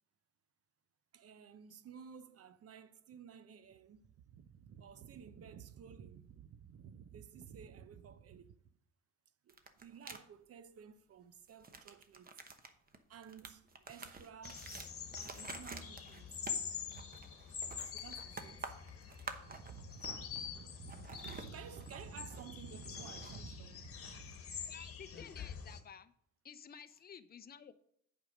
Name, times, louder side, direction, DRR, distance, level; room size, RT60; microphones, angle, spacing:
voice 1, 1.1-8.6 9.4-12.4 13.1-14.7 15.2-16.7 17.8-18.7 19.4-24.3, right 8 dB, 50° right, 0.6 m, -53 dB
sound 1, 9.5-10.2 11.5-20.5 20.7-23.4, right 4 dB, 30° right, 0.9 m, -50 dB
sound 2, 14.4-25.8, left 7 dB, 50° left, 1.3 m, -46 dB
voice 2, 24.7-26.1 26.4-27.7, left 7 dB, 30° left, 0.6 m, -52 dB
8.1 x 5.4 x 5.1 m
cardioid pair, 90°, 30 cm